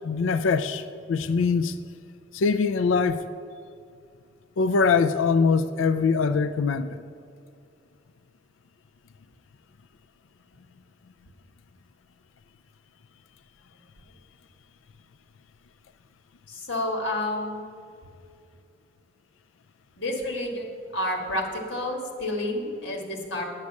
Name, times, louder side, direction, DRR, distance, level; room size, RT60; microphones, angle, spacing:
voice 1, 0.0-1.8 2.3-3.2 4.6-7.0, left 5 dB, 90° left, 0.4 m, -23 dB
voice 2, 16.5-17.7 20.0-20.7 20.9-23.4, left 1 dB, 60° left, 2.0 m, -30 dB
9.5 x 8.4 x 6.4 m
head